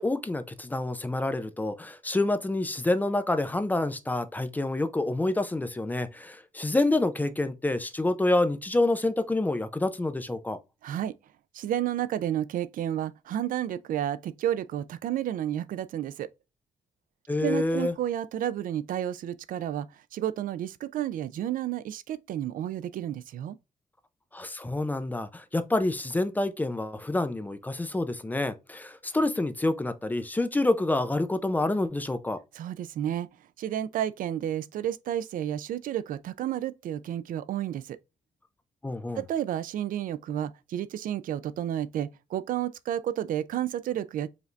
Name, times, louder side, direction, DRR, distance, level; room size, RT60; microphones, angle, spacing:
voice 1, 0.0-10.6 17.3-17.9 24.3-32.4 38.8-39.2, left 2 dB, 10° left, 0.4 m, -27 dB
voice 2, 10.8-11.1 11.5-16.3 17.4-23.6 32.5-33.3 33.6-38.0 39.2-44.3, right 11 dB, 75° right, 0.4 m, -31 dB
5.0 x 2.6 x 3.2 m
wide cardioid pair, 145°, 14 cm